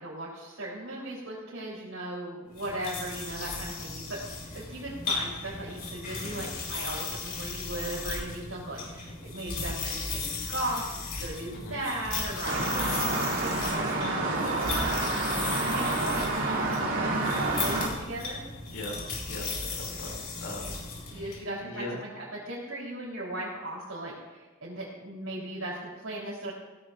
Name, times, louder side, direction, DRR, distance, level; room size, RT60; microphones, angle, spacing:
voice 1, 0.0-15.0 15.7-18.4 21.1-26.5, right 1 dB, 75° right, -6 dB, 4.0 m, -37 dB
sound 1, 2.5-21.4, left 4 dB, 45° left, 4.8 m, -36 dB
voice 2, 11.5-11.8 18.7-19.0 19.2-22.0, left 1 dB, 90° left, -1 dB, 5.7 m, -41 dB
sound 2, 12.4-17.9, right 2 dB, 60° right, 3.3 m, -29 dB
20.5 x 17.5 x 2.7 m, 1.2 s
head